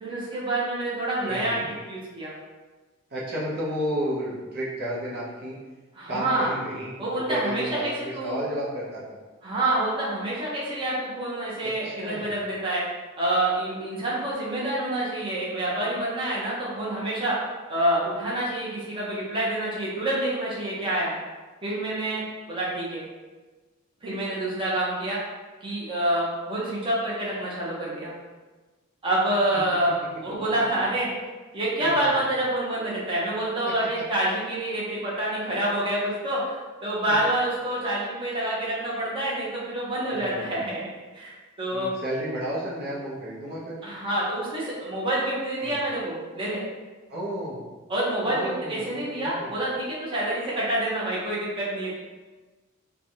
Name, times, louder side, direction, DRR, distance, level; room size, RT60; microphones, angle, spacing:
voice 1, 0.0-2.3 5.9-6.5 7.0-8.4 9.4-12.8 13.2-17.3 17.7-21.1 21.6-23.0 24.0-25.2 25.6-28.1 29.0-30.0 30.2-31.1 31.5-40.9 41.1-41.9 43.8-46.6 47.9-51.9, right 1 dB, 25° right, -7 dB, 0.9 m, -27 dB
voice 2, 1.3-1.7 3.1-5.5 6.1-7.0 7.3-9.2 11.6-12.4 30.2-30.5 31.8-32.1 37.1-37.2 40.1-40.6 41.7-43.8 45.6-45.8 47.1-47.6 48.2-49.5, equal, 50° right, -7 dB, 0.8 m, -32 dB
3.3 x 2.3 x 4.0 m, 1.3 s
head